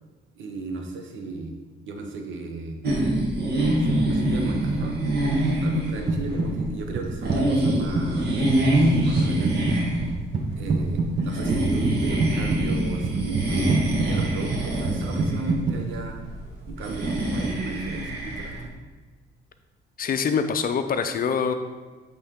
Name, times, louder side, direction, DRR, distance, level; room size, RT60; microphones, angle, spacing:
voice 1, 0.4-1.5 1.9-2.8 3.8-5.0 5.6-8.3 9.0-9.7 10.5-13.7 14.1-16.3 16.7-18.7, right 3 dB, 75° right, 3 dB, 0.9 m, -35 dB
sound 1, 2.8-18.6, right 1 dB, 55° right, 1.5 m, -25 dB
sound 2, 6.1-6.7 7.0-15.8, right 3 dB, 40° right, 0.6 m, -27 dB
voice 2, 20.0-21.5, left 6 dB, 45° left, 8 dB, 0.5 m, -24 dB
8.2 x 3.4 x 3.6 m, 1.3 s
cardioid pair, 90°, 20 cm